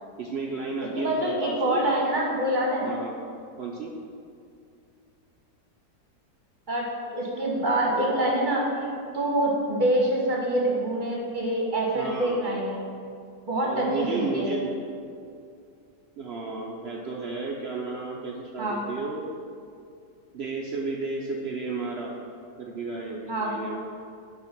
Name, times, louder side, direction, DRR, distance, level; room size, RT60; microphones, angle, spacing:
voice 1, 0.2-1.8 2.8-3.1 3.6-3.9 11.9-12.5 13.6-14.8 16.2-19.2 20.3-22.1 22.6-23.7, right 3 dB, 75° right, -1 dB, 0.5 m, -32 dB
voice 2, 1.0-2.9 6.7-8.7 9.1-12.8 13.5-14.5 18.6-18.8 23.3-23.5, right 1 dB, 35° right, -3 dB, 1.0 m, -25 dB
8.8 x 3.4 x 5.9 m, 2.3 s
omnidirectional pair, 1.8 m